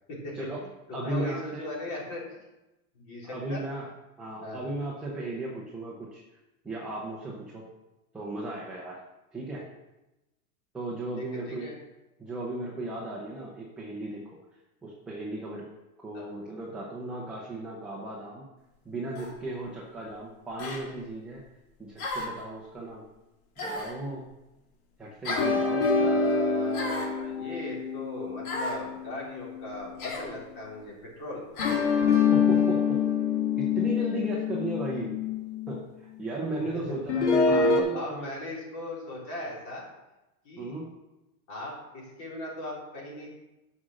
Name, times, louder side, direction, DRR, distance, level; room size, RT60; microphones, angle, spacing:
voice 1, 0.1-2.4 2.9-3.6 4.4-4.7 11.2-11.8 16.1-16.3 26.0-31.4 36.6-37.0 37.4-39.9 40.4-40.7 41.5-43.3, left 1 dB, 35° left, -4 dB, 3.9 m, -38 dB
voice 2, 0.9-1.7 3.2-3.9 4.2-6.2 6.6-7.7 8.1-9.0 9.3-9.7 10.7-11.7 12.2-14.4 14.8-15.7 16.0-18.5 18.8-21.4 21.8-23.0 23.6-24.3 25.0-26.2 31.9-32.0 32.3-33.0 33.6-35.2 35.7-38.3 40.6-40.9, right 2 dB, ahead, -5 dB, 0.4 m, -36 dB
sound 1, 19.2-19.4 20.6-20.8 22.0-22.4 23.6-24.0 25.2-25.6 26.7-27.2 28.4-28.8 30.0-30.3 31.6-31.9, left 2 dB, 75° left, 3.6 m, -33 dB
sound 2, 25.4-29.9 31.6-35.8 37.1-37.8, left 5 dB, 50° left, 2.3 m, -26 dB
9.6 x 6.3 x 6.2 m, 1.0 s
supercardioid pair, 170°, 43 cm